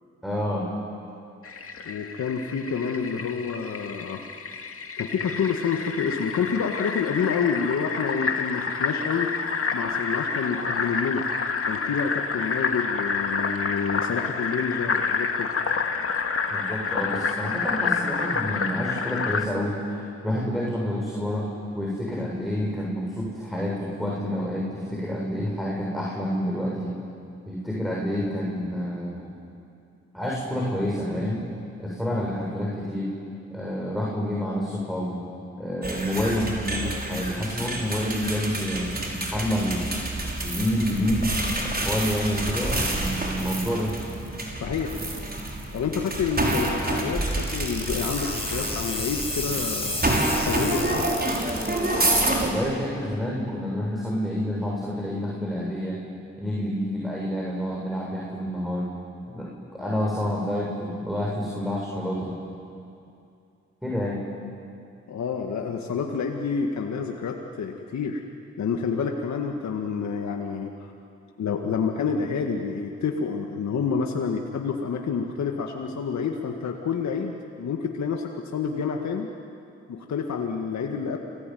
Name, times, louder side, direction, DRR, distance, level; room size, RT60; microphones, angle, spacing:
voice 1, 0.2-0.7 16.5-21.5 21.7-27.0 27.5-29.3 30.1-31.5 31.8-33.1 33.5-35.2 35.6-39.9 40.4-43.9 52.4-56.0 56.4-58.9 59.3-62.4 63.8-64.2, equal, ahead, -4 dB, 7.4 m, -28 dB
Fill (with liquid), 1.4-19.5, left 5 dB, 50° left, 2.0 m, -29 dB
voice 2, 1.9-4.3 5.0-9.3 9.7-11.2 11.7-15.5 44.6-45.0 45.7-50.1 50.4-51.1 65.1-68.2 68.6-70.9 71.4-79.3 79.9-81.2, left 6 dB, 70° left, 2 dB, 1.9 m, -28 dB
sound 1, 35.8-52.5, right 1 dB, 30° right, 6.1 m, -28 dB
sound 2, 47.3-51.9, left 2 dB, 20° left, 4.9 m, -32 dB
30.0 x 19.0 x 9.4 m, 2.6 s
supercardioid pair, 45°, 29 cm